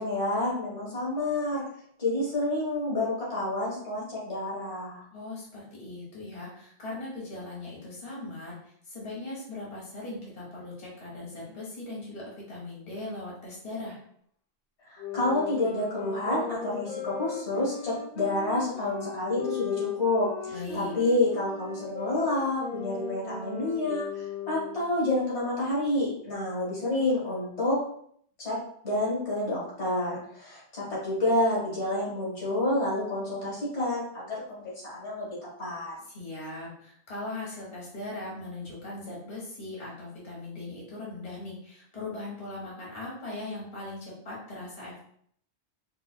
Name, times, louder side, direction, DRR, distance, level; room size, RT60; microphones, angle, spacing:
voice 1, 0.0-1.7 2.0-5.0 14.9-27.8 28.4-28.6 28.8-35.9, left 1 dB, 85° left, -7 dB, 1.8 m, -29 dB
voice 2, 5.1-8.5 8.9-14.0 20.5-20.9 36.1-45.0, left 2 dB, 35° left, -5 dB, 1.2 m, -39 dB
sound 1, 15.0-25.0, left 7 dB, 50° left, 0.5 m, -38 dB
4.3 x 2.4 x 2.2 m, 0.64 s
omnidirectional pair, 1.1 m